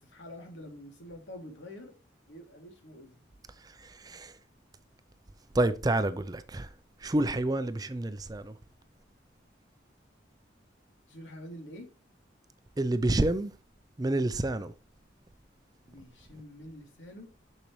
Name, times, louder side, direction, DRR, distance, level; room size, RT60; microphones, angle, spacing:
voice 1, 0.0-1.9 2.3-3.2 7.2-7.5 11.1-11.9 15.9-17.3, left 1 dB, 75° left, 2.7 m, -47 dB
voice 2, 3.6-4.4 5.5-6.7 7.0-8.5 12.8-13.5 14.0-14.7, right 1 dB, 20° right, 0.4 m, -29 dB
6.9 x 6.5 x 3.1 m
head